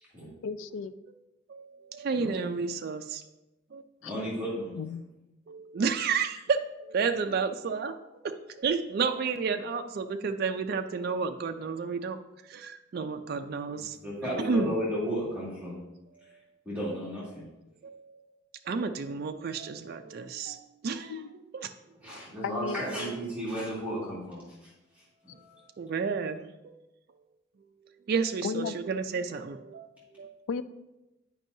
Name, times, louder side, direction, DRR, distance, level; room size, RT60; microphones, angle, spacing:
voice 1, 0.4-0.9 4.0-4.1 4.8-5.0 21.1-21.3 22.4-22.8 28.4-28.7 30.5-30.6, left 5 dB, 80° left, 14 dB, 0.3 m, -33 dB
voice 2, 1.5-3.2 3.7-3.9 5.5-8.0 8.2-14.0 14.4-14.7 17.8-18.3 18.6-21.7 25.8-26.8 27.8-30.3, right 5 dB, 55° right, 7 dB, 0.3 m, -31 dB
voice 3, 4.0-4.8 13.7-15.9 16.2-16.4 16.6-17.5 22.0-25.7, equal, 10° right, -9 dB, 2.0 m, -34 dB
9.0 x 5.3 x 2.7 m, 0.99 s
head